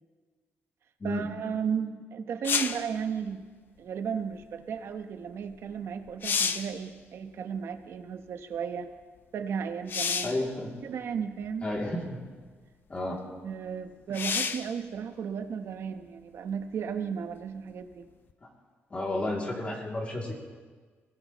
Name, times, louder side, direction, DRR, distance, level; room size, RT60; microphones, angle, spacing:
voice 1, 1.0-3.5 3.8-8.9 9.3-10.4 10.8-11.7 13.4-18.0, right 7 dB, 65° right, 8 dB, 1.1 m, -34 dB
sound 1, 2.4-2.9 5.5-5.6 6.0-6.8 9.9-10.4 11.4-11.5 14.1-14.7 18.3-18.4, left 6 dB, 50° left, 0.8 m, -29 dB
voice 2, 10.2-10.7 11.6-12.2 12.9-13.2 18.9-20.4, left 1 dB, 30° left, -1 dB, 2.8 m, -32 dB
21.5 x 18.0 x 3.1 m, 1.5 s
cardioid pair, 130°, 5 cm